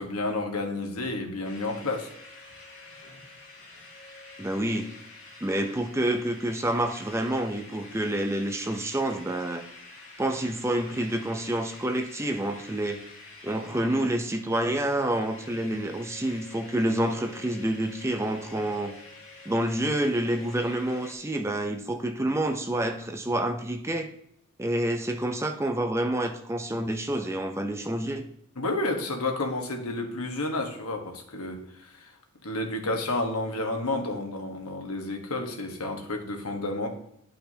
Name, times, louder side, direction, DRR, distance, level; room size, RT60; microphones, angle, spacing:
voice 1, 0.0-2.1 28.6-32.1 32.4-36.9, left 2 dB, 90° left, 3 dB, 1.3 m, -31 dB
sound 1, 1.4-21.1, left 2 dB, 60° left, 2.8 m, -48 dB
voice 2, 4.4-4.9 5.4-9.7 10.2-13.0 13.4-18.9 19.5-24.1 24.6-28.3, right 1 dB, 10° right, 6 dB, 0.5 m, -28 dB
11.0 x 5.6 x 2.8 m, 0.74 s
head